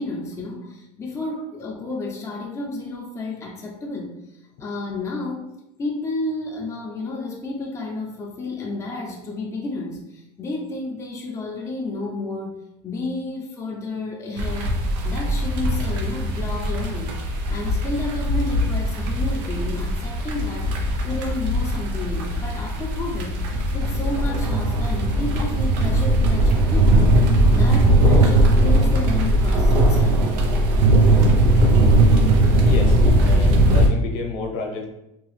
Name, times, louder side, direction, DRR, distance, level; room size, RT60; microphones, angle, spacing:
voice 1, 0.0-4.1 4.6-5.5 5.8-12.6 12.8-14.8 15.0-17.2 17.5-23.4 23.7-30.2, left 2 dB, 15° left, -1 dB, 0.5 m, -31 dB
sound 1, 14.4-33.9, right 1 dB, 90° right, 0.7 m, -19 dB
voice 2, 32.6-34.8, left 4 dB, 65° left, 2 dB, 0.7 m, -31 dB
2.7 x 2.3 x 3.2 m, 0.86 s
cardioid pair, 140°, 21 cm